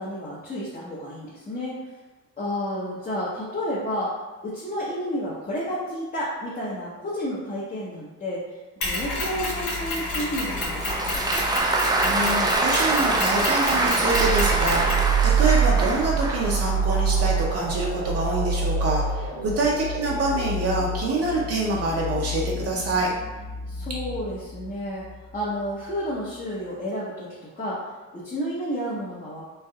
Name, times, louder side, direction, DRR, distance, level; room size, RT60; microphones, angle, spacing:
voice 1, 0.0-1.7 2.4-4.1 4.4-8.4 8.8-11.3 19.3-19.6 23.7-25.1 25.3-27.3 27.6-27.8 28.1-29.4, equal, 25° left, -8 dB, 0.7 m, -31 dB
Mechanisms, 8.8-15.1, left 2 dB, 75° left, 1.3 m, -29 dB
Applause, 10.4-16.5, right 2 dB, 15° right, 0.3 m, -24 dB
voice 2, 12.0-23.1, right 2 dB, 55° right, -3 dB, 0.6 m, -26 dB
sound 1, 14.1-25.4, right 4 dB, 85° right, 1.2 m, -26 dB
3.3 x 2.5 x 2.2 m, 1.2 s
cardioid pair, 90°, 30 cm